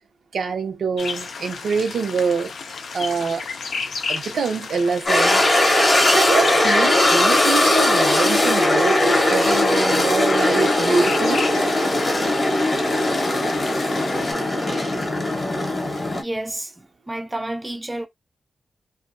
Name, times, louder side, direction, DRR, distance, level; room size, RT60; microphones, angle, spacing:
voice 1, 0.3-2.5 2.9-3.5 4.1-5.4 6.1-9.0 9.3-11.4, right 5 dB, 70° right, 0.9 m, -25 dB
sound 1, 1.0-14.3, left 5 dB, 70° left, 0.5 m, -33 dB
sound 2, 5.1-16.2, left 1 dB, 35° left, 0.9 m, -19 dB
voice 2, 16.2-16.7 17.1-18.1, right 1 dB, 15° right, 0.4 m, -29 dB
2.5 x 2.2 x 2.6 m
wide cardioid pair, 100°, 0 cm